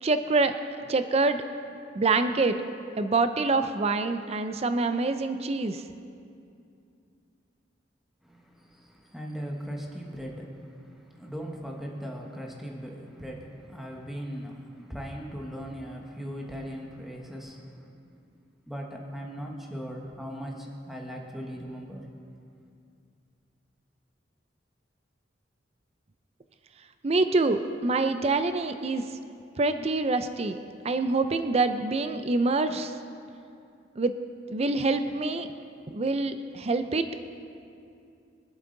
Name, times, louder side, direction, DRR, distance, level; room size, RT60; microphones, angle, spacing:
voice 1, 0.0-0.5 0.9-1.4 2.0-2.6 3.0-5.8 27.0-29.0 29.6-30.6 30.8-32.9 34.0-34.1 34.5-35.5 35.9-37.1, right 3 dB, 35° right, 9 dB, 0.5 m, -25 dB
voice 2, 8.2-17.9 18.7-22.0, equal, ahead, -1 dB, 1.3 m, -39 dB
24.0 x 8.3 x 3.9 m, 2.5 s
head